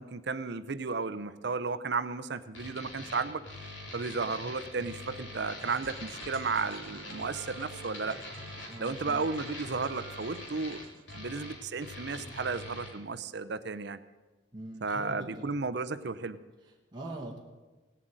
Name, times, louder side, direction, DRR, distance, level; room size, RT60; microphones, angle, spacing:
voice 1, 0.0-3.4 3.9-8.2 8.8-10.8 11.1-14.0 14.8-16.4, right 4 dB, 55° right, 13 dB, 0.6 m, -34 dB
sound 1, 2.5-12.9, left 2 dB, 75° left, 3.9 m, -44 dB
sound 2, 5.6-11.2, right 5 dB, 90° right, 1.0 m, -51 dB
voice 2, 8.6-9.3 14.5-15.5 16.6-17.4, right 1 dB, 20° right, -3 dB, 1.6 m, -43 dB
17.5 x 7.7 x 9.0 m, 1.2 s
head